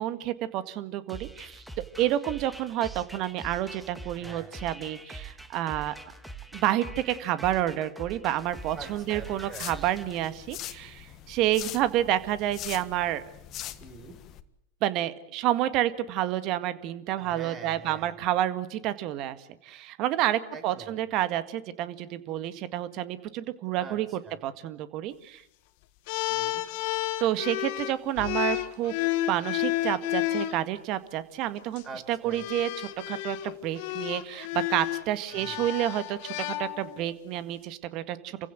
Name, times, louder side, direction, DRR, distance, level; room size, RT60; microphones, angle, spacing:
voice 1, 0.0-1.6 2.0-5.9 6.5-13.2 14.8-19.4 19.6-24.1 24.4-25.4 27.2-28.9 29.3-31.8 32.1-38.4, right 13 dB, 50° right, 13 dB, 1.8 m, -29 dB
sound 1, 1.1-10.2, right 3 dB, 5° right, 2.2 m, -44 dB
voice 2, 4.0-4.5 8.7-9.7 13.8-14.2 17.1-18.2 20.5-20.9 23.8-24.4 26.3-26.7 31.8-32.4 35.3-35.6, right 4 dB, 35° right, 8 dB, 5.1 m, -45 dB
sound 2, 8.5-14.4, left 12 dB, 40° left, 1.6 m, -43 dB
sound 3, 26.1-30.6 31.6-31.8 32.3-37.1, left 15 dB, 60° left, 1.6 m, -31 dB
28.5 x 16.0 x 9.4 m, 0.79 s
hypercardioid pair, 100°, 0 cm